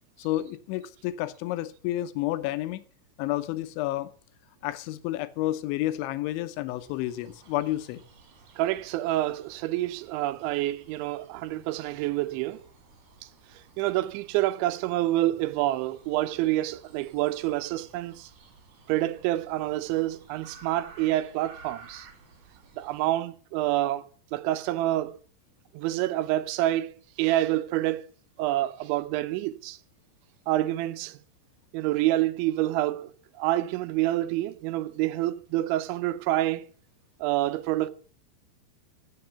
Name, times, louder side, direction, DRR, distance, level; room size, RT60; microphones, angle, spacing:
voice 1, 0.2-2.8 3.2-4.1 4.6-8.0, left 15 dB, 90° left, 3.2 m, -30 dB
sound 1, 6.8-23.1, right 4 dB, 45° right, 3.3 m, -55 dB
voice 2, 8.6-12.6 13.8-18.3 18.9-22.1 22.8-24.0 24.3-25.2 25.7-26.9 27.2-28.1 28.4-29.8 30.5-31.2 31.7-33.1 33.4-36.6 37.2-37.9, right 15 dB, 85° right, 3.1 m, -27 dB
15.5 x 7.0 x 6.8 m
omnidirectional pair, 5.2 m